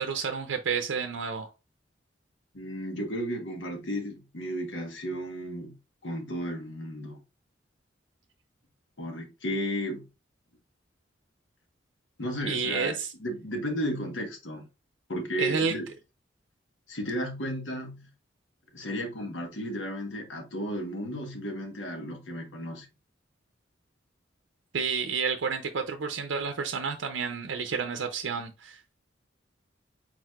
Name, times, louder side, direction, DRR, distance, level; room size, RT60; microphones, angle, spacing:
voice 1, 0.0-1.5 12.4-13.1 15.4-15.7 24.7-29.0, right 5 dB, 90° right, 0.5 m, -30 dB
voice 2, 2.5-5.8 6.0-7.2 9.0-10.1 12.2-14.7 15.1-15.9 16.9-18.1 18.7-22.9, equal, 75° left, 1.2 m, -34 dB
4.5 x 4.1 x 2.4 m
head